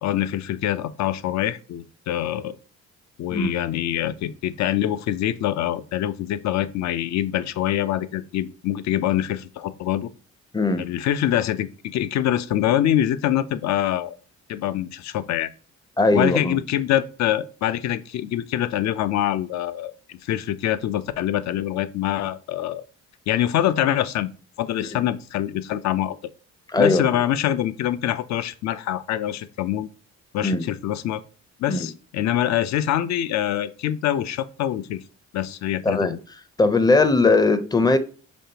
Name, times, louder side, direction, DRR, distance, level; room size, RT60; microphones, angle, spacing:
voice 1, 0.0-2.6 3.2-10.1 10.8-14.2 14.5-15.5 16.1-22.8 23.3-24.3 24.6-26.2 26.8-29.9 30.3-31.2 31.6-35.0 35.3-36.2, left 12 dB, 65° left, 0.5 m, -25 dB
voice 2, 16.0-16.6 24.9-25.0 26.7-27.0 30.4-30.7 31.7-31.9 35.8-36.2 36.6-38.0, left 3 dB, 15° left, 0.5 m, -19 dB
5.3 x 3.6 x 2.8 m
cardioid pair, 90°, 30 cm